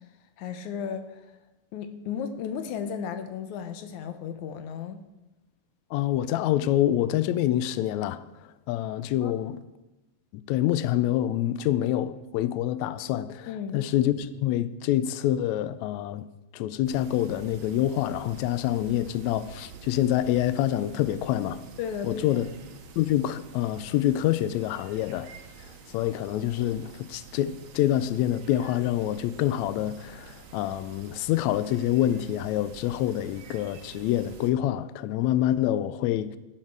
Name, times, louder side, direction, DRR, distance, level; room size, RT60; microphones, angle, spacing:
voice 1, 0.4-1.3 1.7-5.0 9.2-9.5 13.5-13.8 21.8-22.4, left 7 dB, 70° left, 2.1 m, -34 dB
voice 2, 5.9-8.2 8.7-9.6 10.5-13.5 13.7-16.2 16.5-21.6 22.0-22.5 23.0-25.3 25.9-36.4, left 12 dB, 90° left, 1.6 m, -26 dB
sound 1, 16.9-34.5, right 6 dB, 65° right, 2.2 m, -48 dB
13.5 x 11.5 x 4.7 m
omnidirectional pair, 3.8 m